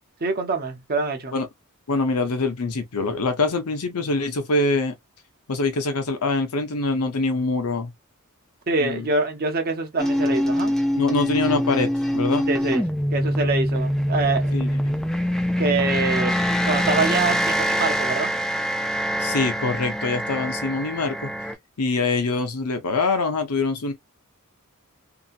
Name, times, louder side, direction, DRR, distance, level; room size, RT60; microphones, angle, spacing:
voice 1, 0.2-1.4 8.7-10.7 12.5-14.6 15.6-18.3, right 3 dB, 45° right, 0.7 m, -25 dB
voice 2, 1.9-4.9 5.5-7.9 8.8-9.1 11.0-12.5 14.5-15.0 19.2-21.3 21.8-23.9, left 3 dB, 85° left, 0.8 m, -24 dB
sound 1, 10.0-21.5, equal, ahead, 0.4 m, -24 dB
2.8 x 2.7 x 2.4 m
head